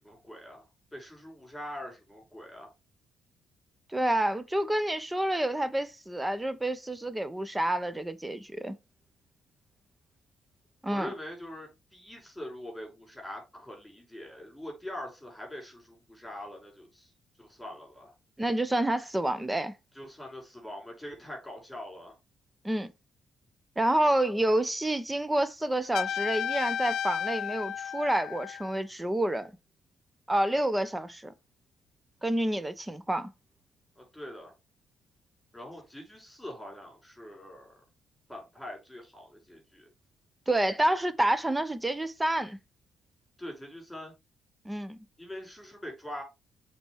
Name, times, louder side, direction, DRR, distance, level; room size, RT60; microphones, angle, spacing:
voice 1, 0.0-2.7 10.8-17.1 17.4-18.1 19.9-22.2 34.0-34.5 35.5-37.7 38.3-39.9 43.4-44.1 45.2-46.2, left 1 dB, 5° left, 5.7 m, -43 dB
voice 2, 3.9-8.7 10.8-11.1 18.4-19.7 22.6-22.9 23.8-29.5 30.3-31.3 32.2-33.3 40.5-42.6 44.6-45.0, right 1 dB, 10° right, 1.0 m, -28 dB
Trumpet, 25.9-28.8, left 9 dB, 80° left, 0.5 m, -33 dB
7.8 x 4.5 x 4.7 m
cardioid pair, 90°, 0 cm